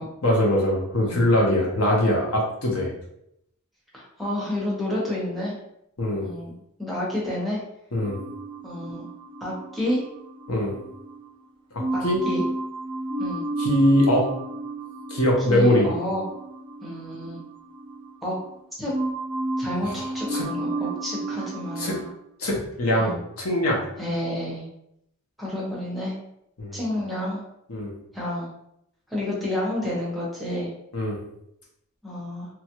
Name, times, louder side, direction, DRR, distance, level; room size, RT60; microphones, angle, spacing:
voice 1, 0.2-2.9 6.0-6.3 7.9-8.2 10.5-10.7 11.7-12.2 13.6-14.3 15.1-15.9 19.8-20.0 20.3-20.4 21.8-22.0 22.4-23.9 26.6-26.8 27.7-27.9 30.9-31.2, left 1 dB, 85° left, -2 dB, 0.9 m, -22 dB
voice 2, 3.9-5.6 6.2-6.5 6.8-7.6 8.6-9.1 9.4-10.0 11.9-12.4 13.2-13.4 15.5-16.2 16.8-17.4 18.2-18.4 18.8-18.9 19.6-22.0 23.0-23.2 24.0-24.7 25.4-26.1 26.7-27.4 28.1-28.5 29.1-30.7 32.0-32.5, left 1 dB, ahead, -6 dB, 0.8 m, -29 dB
sound 1, 8.0-11.3 11.8-18.6 18.9-22.1, right 2 dB, 25° right, 0.4 m, -32 dB
2.9 x 2.4 x 2.9 m, 0.78 s
head